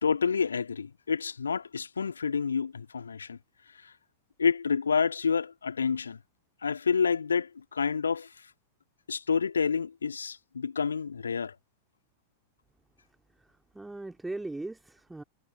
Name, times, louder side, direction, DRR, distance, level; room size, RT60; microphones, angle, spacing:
voice 1, 0.0-3.4 4.4-6.2 6.6-8.3 9.1-11.5, left 6 dB, 75° left, 2.2 m, -28 dB
voice 2, 13.4-15.2, right 2 dB, 5° right, 2.3 m, -39 dB
figure-of-eight pair, 90°, 0 cm